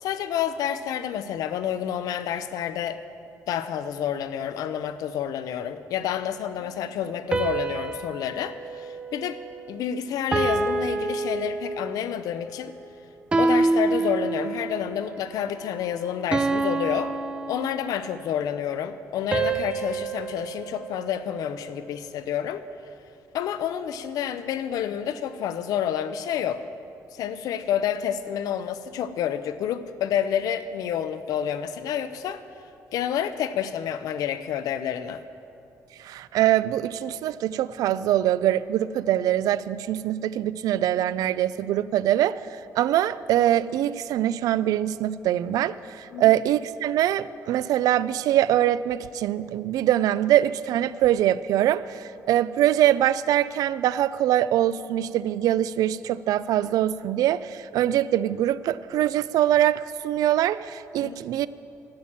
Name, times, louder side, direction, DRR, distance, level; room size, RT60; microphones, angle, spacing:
voice 1, 0.0-3.0 3.5-9.4 9.7-12.7 13.4-17.1 17.5-22.6 23.3-26.6 27.1-32.4 32.9-35.2 46.1-46.4 61.0-61.2, left 9 dB, 80° left, 12 dB, 0.6 m, -29 dB
sound 1, 7.3-9.8 10.3-12.1 13.3-14.8 16.3-18.2 19.3-21.7, right 3 dB, 15° right, 0.5 m, -27 dB
voice 2, 36.0-61.5, right 12 dB, 80° right, 16 dB, 0.4 m, -23 dB
12.5 x 8.8 x 7.4 m, 2.6 s
cardioid pair, 170°, 6 cm